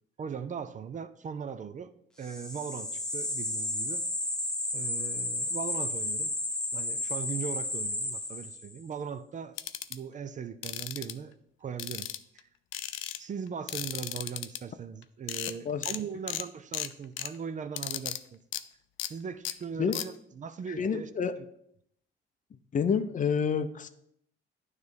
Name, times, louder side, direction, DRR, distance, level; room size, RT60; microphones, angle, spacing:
voice 1, 0.2-1.9 2.2-4.0 4.7-6.3 6.7-9.6 9.9-11.3 11.6-12.1 12.3-12.5 13.2-18.4 19.0-21.1, right 7 dB, 40° right, 12 dB, 0.5 m, -39 dB
sound 1, 2.3-8.8, left 2 dB, 5° left, 1.0 m, -33 dB
sound 2, 9.6-10.0 10.6-11.1 11.8-12.4 12.7-13.2 13.7-14.6 15.0-15.1 15.3-15.5 15.8-16.0 16.3-16.4 16.7-17.3 17.8-18.2 18.5-18.6 19.0-19.1 19.4-19.5 19.9-20.1, left 13 dB, 85° left, 0.4 m, -35 dB
voice 2, 20.7-21.3 22.7-23.9, left 6 dB, 40° left, 11 dB, 0.5 m, -28 dB
9.5 x 3.2 x 5.3 m, 0.72 s
cardioid pair, 90°, 20 cm